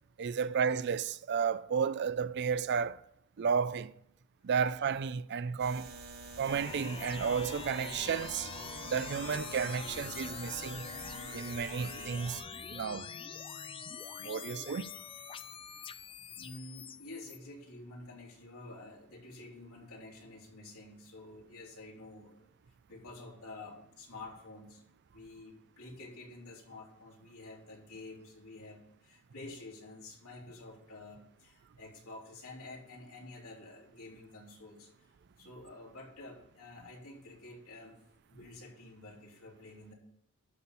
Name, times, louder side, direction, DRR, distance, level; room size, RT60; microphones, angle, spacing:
voice 1, 0.2-3.0 3.4-3.9 4.4-5.9 6.4-8.5 8.9-10.8 11.3-12.4 12.7-13.1 14.2-14.9, right 6 dB, 50° right, 0.4 m, -32 dB
sound 1, 5.6-12.4, right 3 dB, 85° right, 2.8 m, -47 dB
sound 2, 6.5-17.4, left 6 dB, 25° left, 0.4 m, -44 dB
voice 2, 16.4-22.5 22.9-24.8 25.1-38.0 38.3-39.9, left 2 dB, 80° left, 3.2 m, -49 dB
12.0 x 4.3 x 8.3 m
head